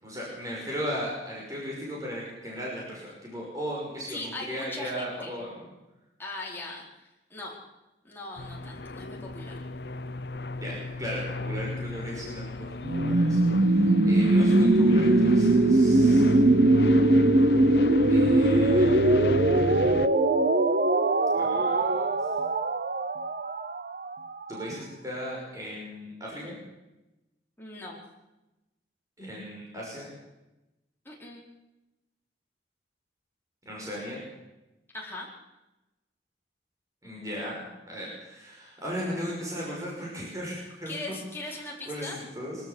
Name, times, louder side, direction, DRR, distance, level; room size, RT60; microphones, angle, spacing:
voice 1, 0.0-5.6 10.6-12.7 13.0-16.3 18.1-19.5 21.3-22.1 24.5-26.6 29.2-30.1 33.7-34.2 37.0-41.0 41.9-42.6, equal, 20° right, -4 dB, 5.8 m, -36 dB
voice 2, 4.1-5.3 6.2-7.5 8.0-9.6 27.6-28.0 31.0-31.4 34.9-35.3 40.5-42.2, left 2 dB, 10° left, -3 dB, 4.7 m, -40 dB
sound 1, 8.4-20.1, left 2 dB, 70° left, 0.8 m, -33 dB
sound 2, 12.8-24.6, right 2 dB, 55° right, 0.9 m, -21 dB
24.0 x 14.0 x 8.3 m, 1.0 s
head